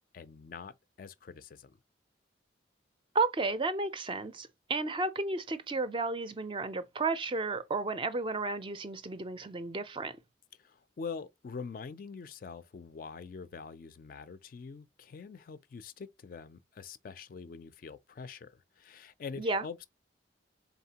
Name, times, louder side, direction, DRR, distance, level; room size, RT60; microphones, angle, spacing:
voice 1, 0.1-1.8 10.6-19.9, left 5 dB, 45° left, 0.3 m, -44 dB
voice 2, 3.1-10.2 19.4-19.6, right 3 dB, 25° right, 0.4 m, -33 dB
4.0 x 3.5 x 2.8 m
head